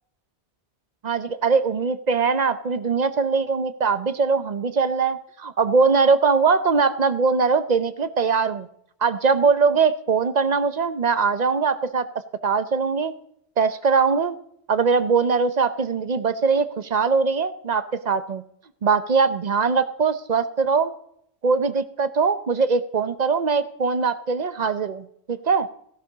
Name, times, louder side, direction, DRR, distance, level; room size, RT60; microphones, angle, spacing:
voice 1, 1.0-8.7 9.0-12.1 12.4-13.1 13.6-14.4 14.7-18.4 18.8-20.9 21.4-25.7, right 5 dB, 45° right, 13 dB, 0.7 m, -21 dB
15.5 x 11.5 x 3.9 m, 0.71 s
omnidirectional pair, 1.1 m